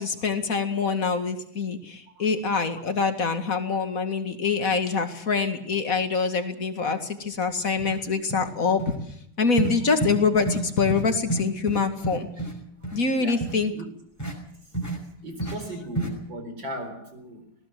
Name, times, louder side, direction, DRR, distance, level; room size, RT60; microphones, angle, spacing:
voice 1, 0.0-8.8 9.4-12.3 12.9-13.7, left 4 dB, 40° left, 8 dB, 2.4 m, -25 dB
sound 1, 7.3-7.4 7.8-8.0 8.3-8.5 8.8-9.0 9.6-9.7 10.0-10.2 10.5-10.6 10.9-11.0 11.3-12.5 12.8-13.0 13.4-13.6 14.2-14.3 14.7-15.0 15.4-15.6 15.9-16.1, right 2 dB, 5° left, 5.5 m, -29 dB
voice 2, 15.2-17.4, equal, 55° right, 6 dB, 4.9 m, -37 dB
19.5 x 18.0 x 7.7 m, 0.70 s
omnidirectional pair, 2.4 m